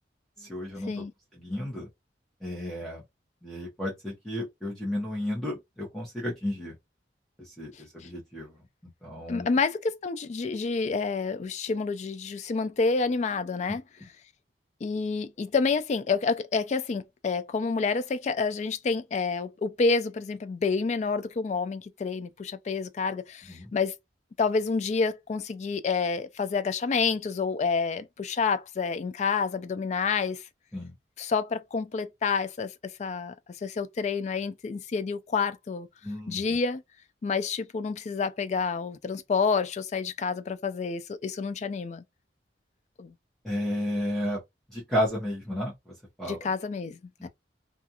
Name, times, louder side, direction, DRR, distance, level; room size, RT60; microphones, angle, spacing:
voice 1, 0.4-1.0 1.3-1.9 2.4-3.0 3.4-6.7 7.4-8.6 9.0-9.5 13.7-13.8 23.5-23.7 30.7-30.9 36.0-36.4 43.4-44.4 44.7-46.5 47.2-47.3, left 1 dB, ahead, 0.8 m, -33 dB
voice 2, 9.3-13.8 14.8-23.9 24.4-30.4 31.2-32.7 33.0-33.3 33.6-35.9 36.3-36.8 37.2-42.0 43.0-43.1 46.2-47.3, left 4 dB, 40° left, 0.3 m, -28 dB
2.4 x 2.3 x 2.7 m
head